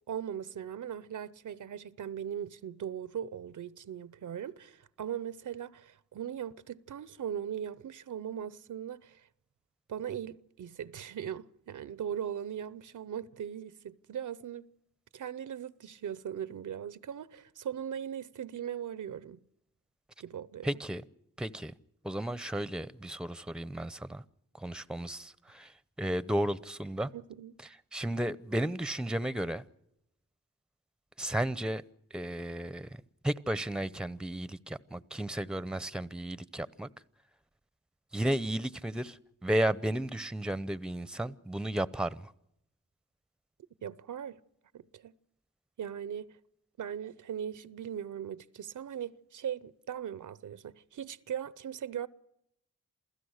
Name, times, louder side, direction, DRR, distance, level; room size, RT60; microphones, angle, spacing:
voice 1, 0.1-9.3 9.9-14.7 15.1-19.4 20.2-20.7 27.1-27.6 43.8-44.4 44.7-45.1 45.8-46.4 46.8-52.1, right 9 dB, 75° right, 0.7 m, -39 dB
voice 2, 20.6-21.0 21.4-21.7 22.0-24.2 24.5-25.7 26.0-27.1 27.9-29.6 31.2-31.8 32.1-32.9 33.2-36.9 38.1-42.3, right 1 dB, 5° right, 0.7 m, -33 dB
28.0 x 16.0 x 6.5 m
cardioid pair, 60°, 31 cm